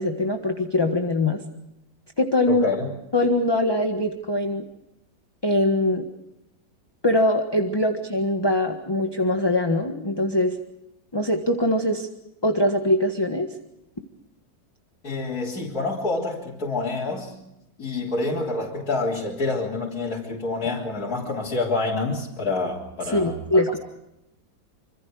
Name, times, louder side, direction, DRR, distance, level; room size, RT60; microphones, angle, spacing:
voice 1, 0.0-1.4 2.2-2.7 3.1-4.6 5.4-6.1 7.0-10.6 11.1-12.1 12.4-13.5 23.1-23.8, left 1 dB, 15° left, 4 dB, 1.4 m, -22 dB
voice 2, 2.5-2.9 15.0-17.3 17.8-23.8, left 3 dB, 50° left, -6 dB, 4.0 m, -27 dB
26.5 x 26.0 x 4.9 m, 0.86 s
omnidirectional pair, 2.0 m